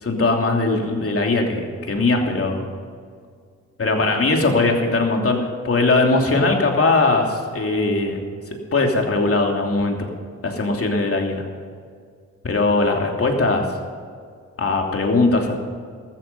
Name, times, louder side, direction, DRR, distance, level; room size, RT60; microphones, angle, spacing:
voice 1, 0.0-2.6 3.8-8.2 8.7-10.1 10.4-11.4 12.4-13.6 14.6-15.5, left 3 dB, 50° left, 2 dB, 2.9 m, -20 dB
14.5 x 13.5 x 5.4 m, 2.1 s
cardioid pair, 75°, 30 cm